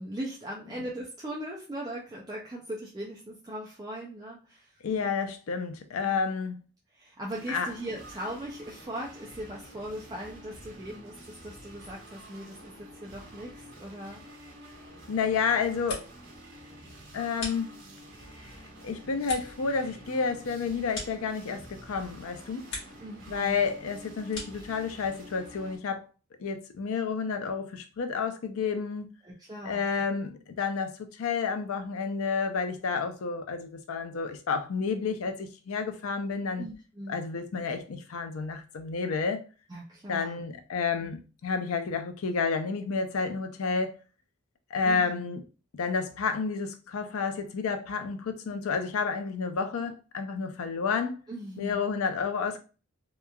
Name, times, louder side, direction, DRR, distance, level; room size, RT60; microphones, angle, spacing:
voice 1, 0.0-5.1 6.0-6.2 6.9-14.2 23.0-23.6 24.0-24.1 29.2-29.9 36.6-37.2 39.7-40.4 41.0-41.1 44.8-45.3 51.3-51.8, right 1 dB, 20° right, 0.4 m, -39 dB
voice 2, 4.8-6.6 7.5-7.7 15.1-16.1 17.1-17.7 18.8-22.6 23.3-26.1 26.4-29.1 29.6-36.6 37.1-39.4 40.1-44.0 44.7-45.4 45.8-51.2 51.6-52.6, left 5 dB, 85° left, 0.5 m, -30 dB
sound 1, 7.3-25.8, right 1 dB, 80° right, 1.2 m, -49 dB
sound 2, 15.5-16.4 16.7-18.1 18.6-21.8 22.2-23.1 23.4-24.7, left 2 dB, 60° left, 1.2 m, -43 dB
2.9 x 2.3 x 2.2 m
head